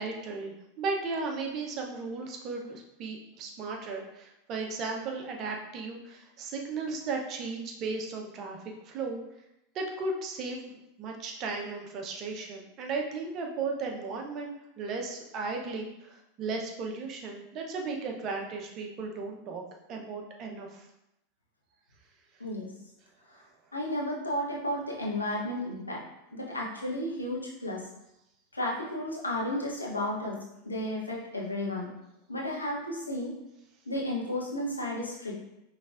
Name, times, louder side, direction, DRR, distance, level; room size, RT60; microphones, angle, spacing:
voice 1, 0.0-8.6 8.8-9.2 9.7-10.7 11.0-19.6 19.9-20.9, right 4 dB, 40° right, 1 dB, 0.8 m, -35 dB
voice 2, 22.4-22.7 23.3-23.4 23.7-26.0 26.3-27.8 28.5-30.4 30.6-31.9 32.3-33.3 33.9-35.4, left 1 dB, 85° left, -3 dB, 0.9 m, -33 dB
5.2 x 3.2 x 2.5 m, 0.87 s
figure-of-eight pair, 85°, 0 cm